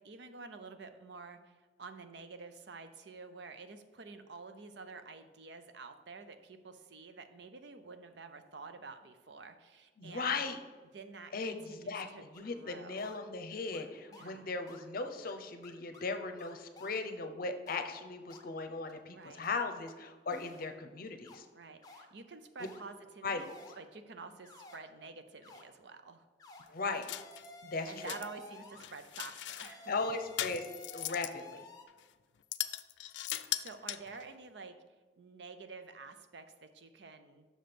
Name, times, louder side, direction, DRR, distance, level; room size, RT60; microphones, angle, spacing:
voice 1, 0.0-10.5 10.9-13.1 14.1-14.5 19.1-19.4 21.5-23.5 23.8-26.3 27.9-29.9 33.2-34.8 35.2-37.4, right 4 dB, 70° right, 9 dB, 0.6 m, -49 dB
voice 2, 10.0-10.6 11.3-21.5 23.2-23.5 26.7-27.1 27.6-28.1 29.9-30.6 30.9-31.6, left 3 dB, 55° left, 7 dB, 0.7 m, -38 dB
sound 1, 12.3-12.4 13.0-13.2 13.7-13.9 14.1-14.3 14.7-14.8 15.3-15.4 15.6-16.1 16.4-17.0 17.7-17.8 18.3-18.4 18.9-19.0 19.4-19.5 19.9-20.0 20.3-20.7 21.2-21.3 21.8-22.1 22.6-22.8 23.3-23.8 24.4-24.8 25.4-25.6 26.4-26.7 27.1-28.9 29.5-31.8, left 2 dB, 20° left, 0.8 m, -53 dB
sound 2, 27.0-27.5 27.9-28.3 28.8-29.7 30.4-31.4 31.9-32.0 32.5-34.2, left 13 dB, 75° left, 0.4 m, -39 dB
6.4 x 5.2 x 5.8 m, 1.4 s
head